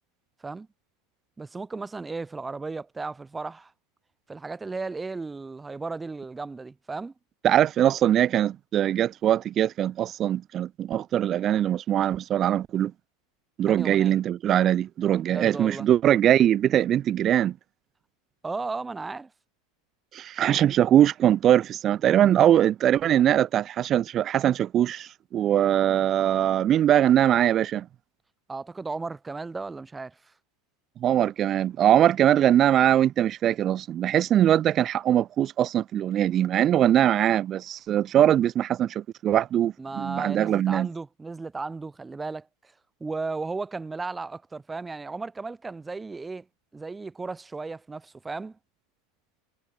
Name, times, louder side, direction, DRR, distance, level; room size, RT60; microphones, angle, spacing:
voice 1, 1.4-3.7 4.3-7.1 13.7-14.2 15.3-15.9 18.4-19.3 28.5-30.2 39.8-42.7 43.0-46.4 46.7-48.6, right 3 dB, 15° right, 4.9 m, -35 dB
voice 2, 7.4-12.9 13.6-17.5 20.1-27.9 31.0-40.9, right 11 dB, 40° right, 0.4 m, -22 dB
supercardioid pair, 110°, 0 cm